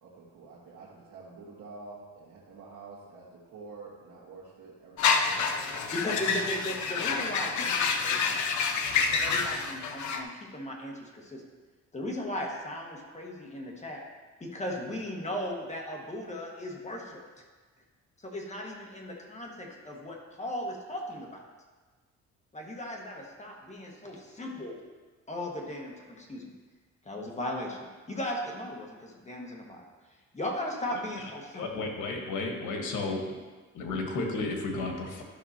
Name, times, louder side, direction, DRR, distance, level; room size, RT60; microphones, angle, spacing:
voice 1, 0.0-5.9, right 3 dB, 70° right, -8 dB, 1.7 m, -48 dB
sound 1, 5.0-10.2, left 5 dB, 70° left, 0.8 m, -28 dB
voice 2, 5.9-8.4 9.1-11.4 11.9-14.0 14.4-17.4 18.2-21.4 22.5-24.8 25.3-26.5 27.0-29.8 30.3-31.8, left 1 dB, 25° left, -1 dB, 1.6 m, -37 dB
voice 3, 31.5-33.2 33.7-35.2, left 3 dB, 90° left, 2 dB, 1.5 m, -32 dB
12.0 x 5.9 x 2.9 m, 1.3 s
cardioid pair, 90°, 30 cm